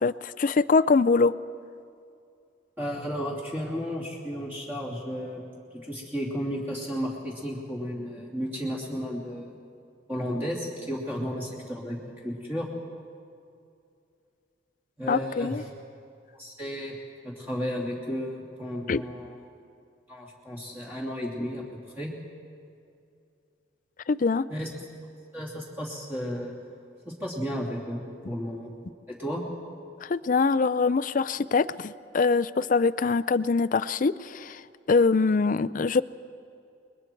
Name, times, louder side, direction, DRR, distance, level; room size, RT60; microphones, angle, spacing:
voice 1, 0.0-1.3 15.1-15.6 18.9-19.0 24.1-24.5 30.0-34.6 34.9-36.0, left 4 dB, 45° left, 14 dB, 0.4 m, -23 dB
voice 2, 2.8-5.4 5.7-9.5 10.1-12.7 15.0-15.6 16.4-17.0 17.2-19.4 20.1-21.6 22.0-22.1 24.5-24.7 25.3-26.6 27.0-28.7 29.1-29.5, equal, 10° right, -4 dB, 2.8 m, -33 dB
29.5 x 21.5 x 4.6 m, 2.5 s
head